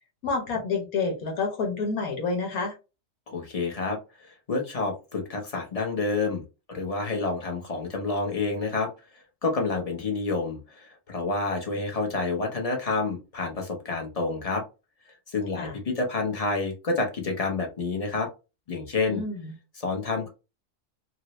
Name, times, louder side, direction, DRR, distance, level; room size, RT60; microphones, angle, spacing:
voice 1, 0.2-2.7 15.6-15.7 19.1-19.5, left 4 dB, 85° left, 1.5 m, -28 dB
voice 2, 3.3-6.4 6.7-14.6 15.3-18.3 18.7-19.2 19.7-20.3, left 3 dB, 35° left, 0.7 m, -29 dB
2.8 x 2.6 x 3.0 m
omnidirectional pair, 1.5 m